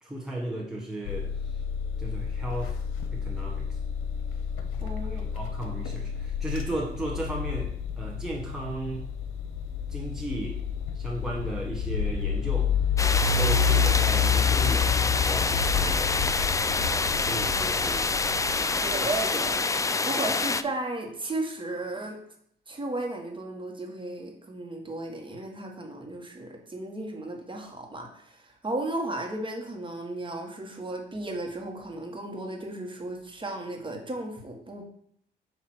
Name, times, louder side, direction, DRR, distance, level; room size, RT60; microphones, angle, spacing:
voice 1, 0.0-1.6 2.0-2.8 3.1-3.8 5.0-9.0 9.9-10.6 10.9-12.7 13.3-16.3 16.5-17.0 17.3-18.1 18.7-18.8, right 1 dB, 5° right, -2 dB, 1.1 m, -35 dB
sound 1, 1.0-19.5, left 7 dB, 90° left, 0.8 m, -29 dB
voice 2, 4.8-5.3 18.8-22.2 22.7-34.8, right 2 dB, 25° right, 2 dB, 1.5 m, -35 dB
sound 2, 13.0-20.6, left 4 dB, 15° left, 0.4 m, -27 dB
7.6 x 2.9 x 6.1 m, 0.69 s
cardioid pair, 90°, 20 cm